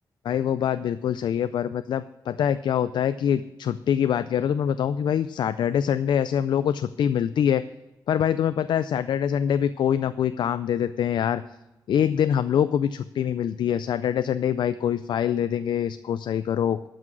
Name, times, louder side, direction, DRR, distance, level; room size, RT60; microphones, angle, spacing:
voice 1, 0.2-7.6 8.1-11.4 11.9-16.9, left 9 dB, 85° left, 13 dB, 0.4 m, -24 dB
12.5 x 6.0 x 6.2 m, 0.99 s
wide cardioid pair, 145°, 8 cm